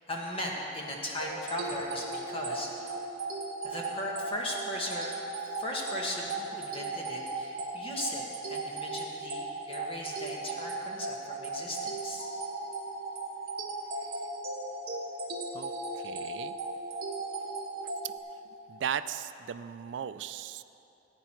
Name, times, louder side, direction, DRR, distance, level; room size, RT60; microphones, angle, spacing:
voice 1, 0.1-2.9 3.6-5.1 5.5-8.2 8.5-12.3, left 1 dB, 30° left, -2 dB, 1.5 m, -37 dB
sound 1, 1.2-18.2, right 2 dB, 55° right, 1.2 m, -37 dB
voice 2, 15.5-16.6 18.0-18.1 18.7-20.6, right 8 dB, 70° right, 13 dB, 0.3 m, -37 dB
15.5 x 9.2 x 4.5 m, 2.8 s
head